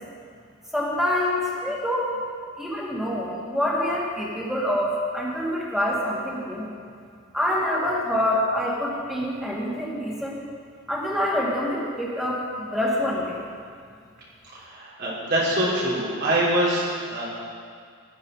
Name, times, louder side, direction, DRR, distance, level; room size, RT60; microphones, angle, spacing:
voice 1, 0.7-2.1 2.6-6.7 7.3-10.4 10.9-13.4, left 1 dB, ahead, -5 dB, 2.3 m, -26 dB
voice 2, 14.6-17.3, right 1 dB, 55° right, -7 dB, 4.0 m, -24 dB
15.0 x 11.5 x 4.0 m, 2.1 s
head